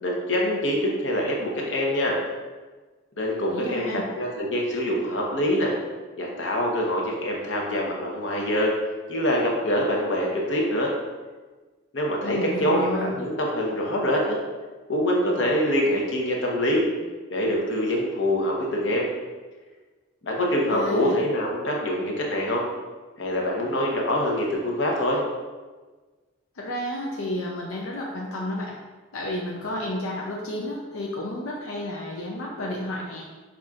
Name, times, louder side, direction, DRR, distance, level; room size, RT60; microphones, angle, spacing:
voice 1, 0.0-2.2 3.2-5.7 6.2-8.7 9.1-10.9 11.9-14.4 14.9-16.8 17.3-19.1 20.2-22.6 23.2-25.2, equal, 65° left, -2 dB, 0.9 m, -25 dB
voice 2, 3.5-4.1 12.2-13.1 20.4-21.2 26.6-28.8 29.1-33.3, left 1 dB, 90° left, -2 dB, 0.5 m, -31 dB
6.0 x 3.7 x 2.4 m, 1.3 s
head